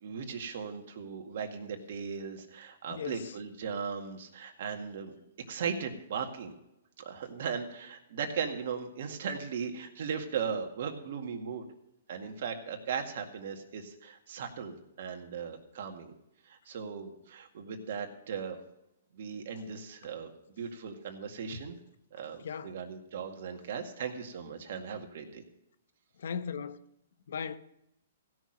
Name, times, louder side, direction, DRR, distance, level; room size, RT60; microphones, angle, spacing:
voice 1, 0.0-5.1 5.5-6.5 7.0-11.7 12.1-16.1 16.5-18.6 19.1-21.8 22.1-25.2, right 6 dB, 60° right, 2.0 m, -38 dB
voice 2, 2.9-3.3 22.4-22.7 26.2-26.8 27.3-27.6, left 7 dB, 70° left, 0.9 m, -37 dB
16.0 x 6.3 x 6.5 m
hypercardioid pair, 140°, 0 cm